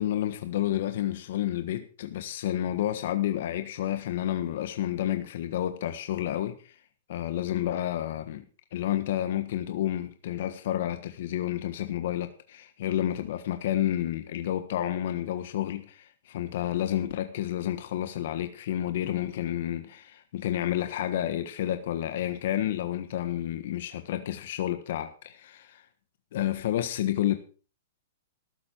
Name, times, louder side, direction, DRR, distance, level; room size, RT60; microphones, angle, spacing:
voice 1, 0.0-6.7 7.1-8.4 8.7-25.8 26.3-27.3, left 12 dB, 60° left, 1.4 m, -30 dB
14.0 x 12.0 x 4.5 m
hypercardioid pair, 155°, 0 cm